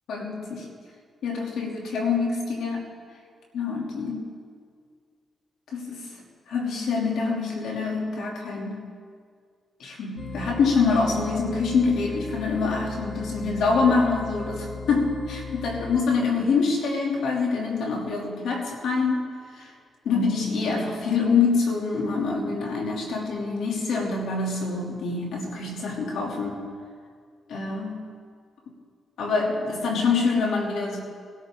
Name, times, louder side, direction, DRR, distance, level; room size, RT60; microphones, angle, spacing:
voice 1, 0.1-0.6 1.2-2.9 3.5-4.3 5.7-6.1 6.5-8.9 9.8-19.3 19.5-19.7 20.0-26.6 27.5-28.1 29.2-31.0, left 4 dB, 80° left, -1 dB, 2.9 m, -25 dB
sound 1, 10.2-16.0, left 4 dB, 25° left, 2.3 m, -37 dB
22.0 x 13.0 x 3.8 m, 2.1 s
cardioid pair, 65°, 0 cm